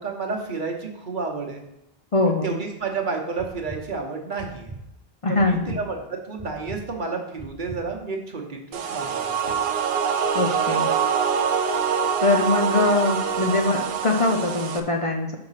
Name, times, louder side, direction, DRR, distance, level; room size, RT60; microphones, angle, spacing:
voice 1, 0.0-1.6 2.3-4.7 5.3-9.3, right 4 dB, 50° right, 1 dB, 1.2 m, -31 dB
voice 2, 2.1-2.5 5.2-5.8 10.3-10.9 12.2-15.4, left 3 dB, 40° left, 1 dB, 0.6 m, -22 dB
sound 1, 3.4-3.8 4.4-4.8 5.4-5.8 6.4-6.8 7.4-7.8, right 3 dB, 20° right, 0.7 m, -38 dB
sound 2, 8.7-14.8, right 6 dB, 75° right, 0.9 m, -24 dB
5.9 x 4.8 x 5.6 m, 0.86 s
omnidirectional pair, 1.0 m